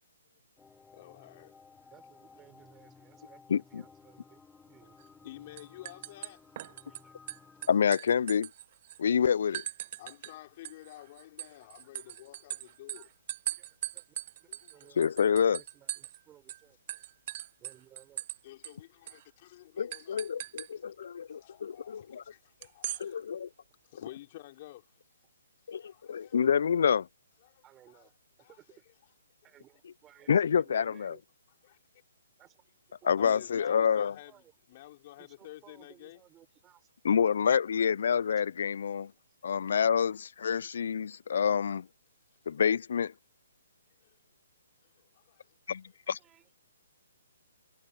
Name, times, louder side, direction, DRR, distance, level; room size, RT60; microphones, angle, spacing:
sound 1, 0.6-7.8, left 5 dB, 10° left, 7.5 m, -57 dB
voice 1, 0.9-1.5 5.2-6.4 10.0-13.1 14.5-14.9 18.4-20.3 20.6-20.7 21.3-23.4 23.8-24.9 25.8-26.5 27.4-28.1 28.4-28.6 28.9-29.0 30.2-30.3 31.6-31.8 33.2-34.4 34.7-36.2 44.0-44.2 44.8-45.6, left 16 dB, 40° left, 4.8 m, -51 dB
voice 2, 1.9-3.4 3.7-5.0 6.9-7.1 10.9-11.0 11.8-12.2 12.9-13.1 13.5-16.8 17.6-18.2 20.8-21.3 23.4-23.5 27.6-28.8 29.4-31.2 32.4-32.6 33.0-33.1 33.6-34.5 35.2-36.9 39.2-39.4 46.0-46.6, right 12 dB, 20° right, 5.0 m, -60 dB
voice 3, 3.5-3.8 7.7-8.5 9.0-9.6 15.0-15.6 19.8-22.2 23.0-23.5 25.7-27.1 30.3-31.2 33.0-34.1 37.0-39.1 39.4-41.9 42.5-43.1 45.7-46.2, left 7 dB, 60° left, 0.4 m, -27 dB
sound 2, 5.0-5.3 5.6-7.0 7.3-9.0 9.5-10.3 10.6-16.2 16.5-16.6 16.9-18.4 18.6-18.7 19.1-19.2 19.9-20.7 22.6-23.0, right 14 dB, 40° right, 0.3 m, -40 dB
figure-of-eight pair, 135°, 0 cm